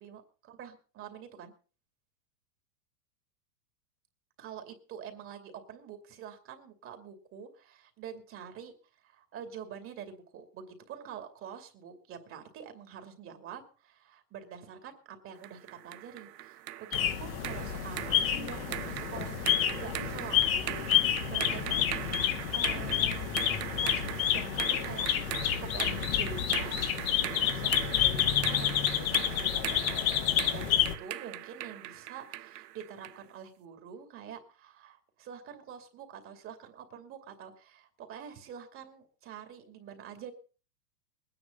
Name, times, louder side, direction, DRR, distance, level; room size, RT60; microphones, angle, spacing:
voice 1, 0.0-1.5 4.4-21.8 22.5-23.3 23.8-25.1 25.6-30.0 30.5-40.3, right 8 dB, 25° right, 7 dB, 2.5 m, -46 dB
sound 1, 15.4-33.2, right 14 dB, 85° right, 0.8 m, -40 dB
sound 2, 16.9-30.9, left 11 dB, 55° left, 2.0 m, -29 dB
20.5 x 9.8 x 5.4 m, 0.38 s
supercardioid pair, 145°, 47 cm